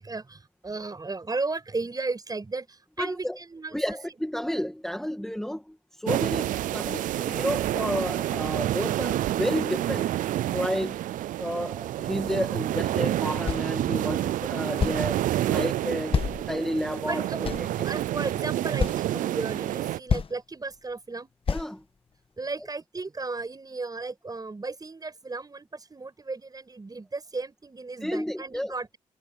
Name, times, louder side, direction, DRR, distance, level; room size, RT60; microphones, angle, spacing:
voice 1, 0.0-4.0 14.7-15.0 16.3-16.4 16.9-21.3 22.4-29.0, right 3 dB, 30° right, 5.7 m, -35 dB
voice 2, 3.0-3.4 3.7-10.1 10.5-11.0 11.4-15.2 15.5-17.9 21.5-21.8 28.0-28.7, equal, 5° left, 2.0 m, -31 dB
sound 1, 6.1-20.0, right 13 dB, 90° right, 0.4 m, -28 dB
sound 2, 13.5-13.7 14.8-15.1 16.1-16.9 17.4-18.1 18.8-19.0 19.7-19.8 20.1-20.3 21.5-21.7, left 6 dB, 45° left, 1.4 m, -27 dB
cardioid pair, 85°, 13 cm